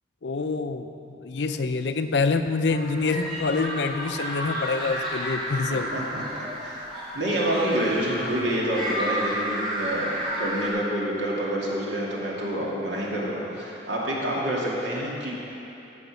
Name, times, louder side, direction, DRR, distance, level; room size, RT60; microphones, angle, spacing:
voice 1, 0.2-5.9, left 4 dB, 70° left, 8 dB, 0.5 m, -26 dB
sound 1, 2.7-10.7, equal, 25° right, 2.0 m, -32 dB
voice 2, 5.7-6.8 7.1-15.3, right 1 dB, 80° right, -4 dB, 2.1 m, -28 dB
14.0 x 5.2 x 6.4 m, 3.0 s
head